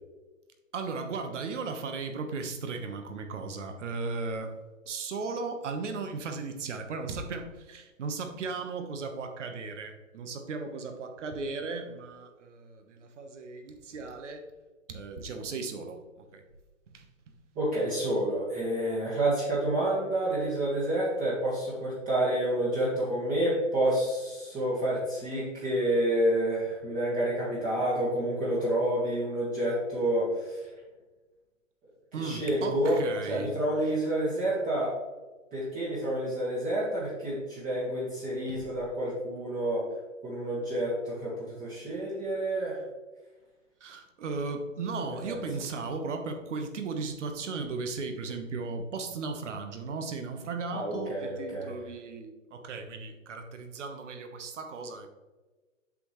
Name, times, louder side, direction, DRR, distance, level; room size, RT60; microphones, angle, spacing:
voice 1, 0.7-4.6 4.8-14.4 14.9-16.4 16.9-17.1 32.1-33.5 38.5-38.6 43.8-55.1, right 4 dB, 65° right, 6 dB, 1.3 m, -36 dB
voice 2, 17.5-30.7 32.2-33.0 33.3-35.0 35.5-39.8 40.2-42.8 45.2-45.4 50.7-51.7, right 1 dB, 20° right, -6 dB, 1.7 m, -29 dB
7.6 x 6.0 x 3.1 m, 1.2 s
hypercardioid pair, 130°, 39 cm